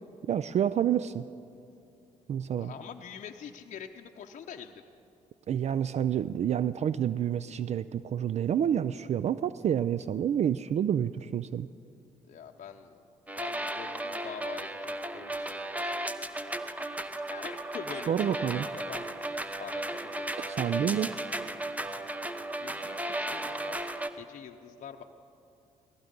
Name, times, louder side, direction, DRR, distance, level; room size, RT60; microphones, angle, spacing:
voice 1, 0.3-1.3 2.3-2.7 5.5-11.7 18.1-18.7 20.4-21.1, right 9 dB, 45° right, 16 dB, 0.4 m, -28 dB
voice 2, 2.6-4.8 12.3-13.0 13.3-16.0 17.3-19.3 19.6-20.6 22.6-23.8 24.1-25.0, left 7 dB, 50° left, 3 dB, 0.7 m, -45 dB
sound 1, 13.3-24.1, right 1 dB, 10° right, 0.9 m, -35 dB
17.0 x 15.5 x 5.3 m, 2.6 s
hypercardioid pair, 55°, 15 cm